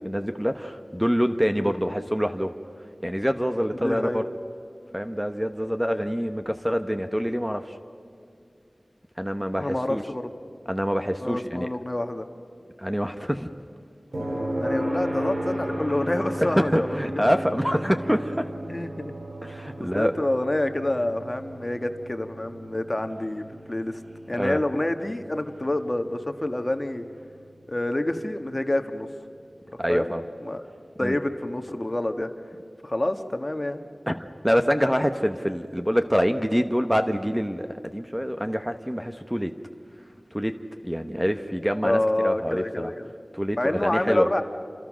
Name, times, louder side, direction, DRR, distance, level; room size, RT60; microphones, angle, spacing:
voice 1, 0.0-2.5 3.0-4.2 4.9-7.8 9.2-10.0 10.7-11.7 12.8-13.5 16.4-18.5 19.4-20.1 24.3-24.6 29.8-30.2 31.0-31.1 34.1-39.5 40.3-40.5 40.8-42.9 43.3-44.3, equal, 5° right, 7 dB, 1.0 m, -26 dB
voice 2, 3.8-4.2 9.6-10.3 11.2-12.3 14.6-17.3 18.7-19.1 19.8-24.0 24.3-27.0 27.7-29.1 29.9-30.1 30.4-30.7 31.0-32.3 32.8-33.8 41.8-43.0 43.6-44.4, left 1 dB, 35° left, 7 dB, 1.5 m, -27 dB
sound 1, 14.1-28.0 30.2-30.3, equal, 80° right, 5.5 m, -35 dB
29.5 x 26.5 x 6.3 m, 2.3 s
wide cardioid pair, 55°, 0 cm